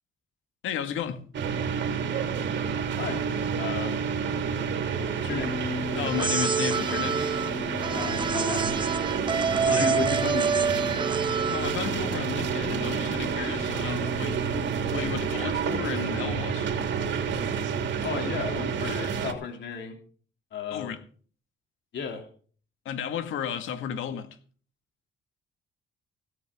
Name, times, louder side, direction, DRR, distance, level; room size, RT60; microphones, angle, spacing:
voice 1, 0.6-1.2 5.9-7.2 9.6-10.1 11.5-14.4 14.9-16.7 20.7-21.0 22.9-24.3, left 8 dB, 85° left, 2.0 m, -33 dB
sound 1, 1.3-19.3, right 6 dB, 65° right, 3.1 m, -29 dB
voice 2, 3.0-3.3 3.6-4.0 5.2-5.5 7.9-8.7 9.6-10.5 18.0-20.0 20.5-20.9 21.9-22.3, left 6 dB, 65° left, 3.1 m, -34 dB
sound 2, 5.3-15.8, left 4 dB, 25° left, 3.1 m, -39 dB
sound 3, 6.0-11.9, right 5 dB, 25° right, 0.6 m, -27 dB
16.5 x 14.5 x 3.7 m
cardioid pair, 90°, 20 cm